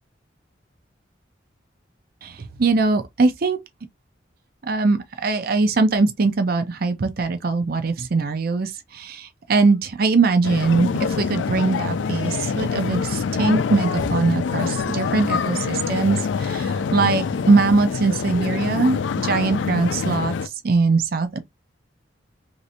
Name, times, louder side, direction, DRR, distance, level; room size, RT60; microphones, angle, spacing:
voice 1, 2.2-3.6 4.6-20.3 20.6-21.4, right 3 dB, 55° right, 0.5 m, -21 dB
sound 1, 10.4-20.5, left 5 dB, 80° left, 0.4 m, -25 dB
3.1 x 2.7 x 2.8 m
head